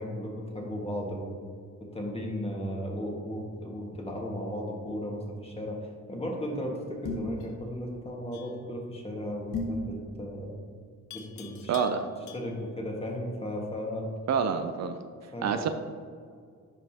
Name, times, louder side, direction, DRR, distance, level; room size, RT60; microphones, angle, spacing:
voice 1, 0.0-1.4 1.9-5.8 6.1-10.5 11.1-14.1 15.3-15.6, equal, 20° left, -1 dB, 1.6 m, -35 dB
sound 1, 7.0-7.4 9.5-9.9, left 2 dB, 85° left, 1.6 m, -32 dB
Livestock farm animals working animals, 8.3-8.7 11.1-12.7, left 9 dB, 70° left, 0.7 m, -48 dB
voice 2, 11.7-12.1 14.3-15.0 15.4-15.7, right 6 dB, 60° right, 8 dB, 0.5 m, -27 dB
9.9 x 5.4 x 2.8 m, 2.1 s
cardioid pair, 90°, 30 cm